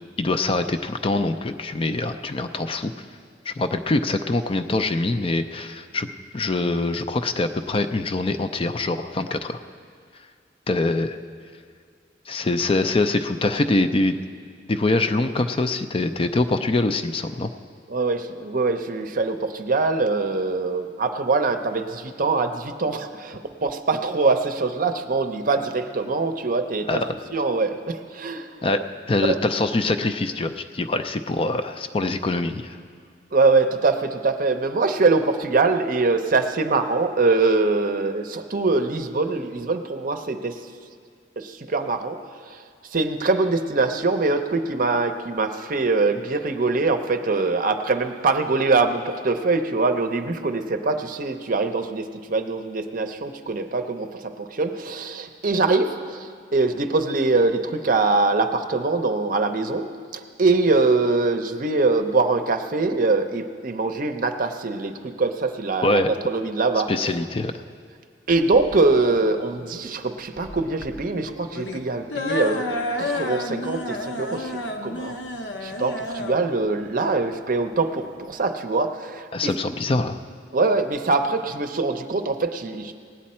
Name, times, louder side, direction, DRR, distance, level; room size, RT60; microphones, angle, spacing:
voice 1, 0.2-2.9 3.5-6.1 6.3-9.6 10.7-11.2 12.3-14.2 14.7-17.5 26.9-27.1 28.6-28.8 29.1-32.8 65.8-66.1 66.9-67.5 79.3-80.2, left 2 dB, 30° left, 8 dB, 0.4 m, -24 dB
voice 2, 17.9-27.0 27.3-28.5 29.2-29.4 33.3-40.6 41.4-42.2 42.5-42.6 42.9-66.9 68.3-75.2 75.6-79.5 80.5-82.9, right 3 dB, 50° right, 7 dB, 0.6 m, -23 dB
sound 1, 68.3-78.3, left 2 dB, 75° left, 0.8 m, -32 dB
18.0 x 9.4 x 4.3 m, 2.1 s
head